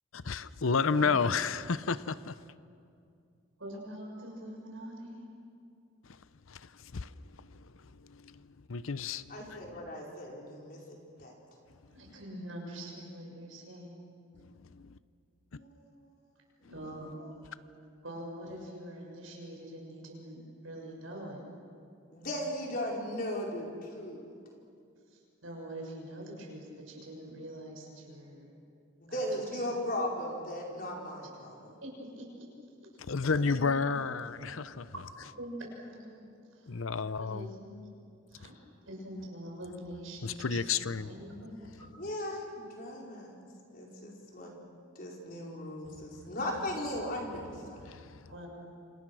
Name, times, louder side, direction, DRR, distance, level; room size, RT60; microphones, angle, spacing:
voice 1, 0.1-2.3 6.5-7.1 7.4-7.7 8.0-9.8 14.4-14.9 33.1-34.9 36.7-37.5 40.2-41.1 47.8-48.1, left 5 dB, 85° left, 0.7 m, -32 dB
voice 2, 0.9-1.4 3.6-5.3 11.8-14.0 16.6-17.3 18.0-21.4 25.1-28.5 29.1-29.6 31.8-32.5 33.2-34.1 34.4-34.5 34.9-37.9 38.3-38.6 38.9-41.9 48.2-48.5, right 1 dB, 80° right, 6.9 m, -44 dB
voice 3, 9.3-11.3 15.6-15.7 17.2-17.3 22.1-24.3 29.0-31.7 42.0-43.4 43.7-44.5 44.9-47.8, left 1 dB, 45° left, 5.0 m, -37 dB
28.0 x 27.5 x 6.3 m
head